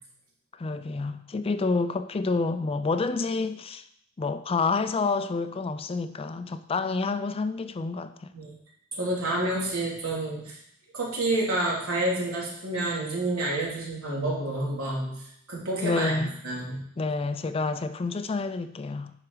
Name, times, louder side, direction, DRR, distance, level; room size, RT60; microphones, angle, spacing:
voice 1, 0.5-3.8 4.2-8.3 15.8-16.3 17.0-19.1, left 3 dB, 25° left, 0.3 m, -28 dB
voice 2, 8.9-10.6 10.9-15.1 15.5-16.2 16.4-16.8, right 2 dB, 80° right, 3.1 m, -29 dB
10.5 x 4.8 x 4.7 m
head